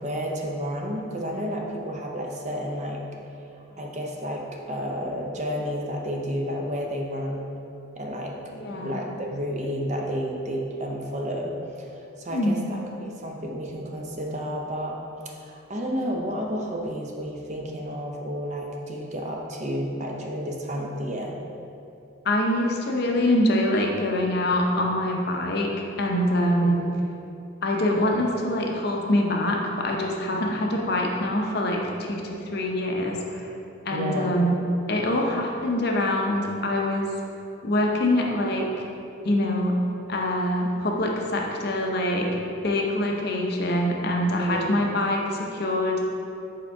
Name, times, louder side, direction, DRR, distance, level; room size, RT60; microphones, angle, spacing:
voice 1, 0.0-3.0 3.8-7.5 8.0-8.4 8.7-15.0 15.2-21.4 26.6-26.8 33.9-34.4 44.4-44.7, equal, 35° right, 0 dB, 0.5 m, -31 dB
voice 2, 8.5-9.0 12.3-12.7 22.2-26.8 27.6-32.2 32.5-33.4 33.8-34.5 34.9-37.1 37.6-38.9 39.2-39.7 40.1-46.0, left 1 dB, 50° left, 0 dB, 0.6 m, -24 dB
4.9 x 4.4 x 4.6 m, 2.8 s
head